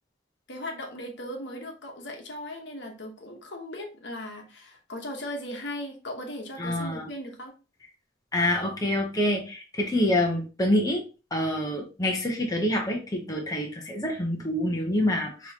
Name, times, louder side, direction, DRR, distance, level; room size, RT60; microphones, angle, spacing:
voice 1, 0.5-7.5, left 1 dB, 65° left, 2 dB, 1.1 m, -38 dB
voice 2, 6.6-7.1 8.3-11.0 11.3-15.5, left 1 dB, 20° left, 0 dB, 0.9 m, -26 dB
6.2 x 3.0 x 2.8 m, 0.32 s
head